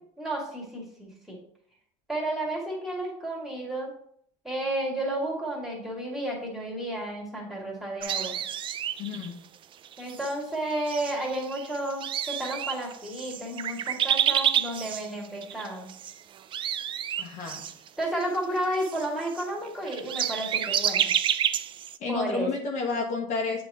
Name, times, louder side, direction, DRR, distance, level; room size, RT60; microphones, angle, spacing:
voice 1, 0.2-1.4 2.1-3.9 4.4-8.4 10.0-15.9 18.0-21.1 22.1-22.5, right 1 dB, ahead, -3 dB, 2.0 m, -32 dB
sound 1, 8.0-9.3 9.8-10.3 10.9-16.1 16.4-22.0, right 10 dB, 35° right, 0.3 m, -29 dB
voice 2, 9.0-9.4 17.2-17.6 22.0-23.6, left 4 dB, 50° left, 1 dB, 1.1 m, -31 dB
8.3 x 3.0 x 4.1 m, 0.65 s
cardioid pair, 130°, 15 cm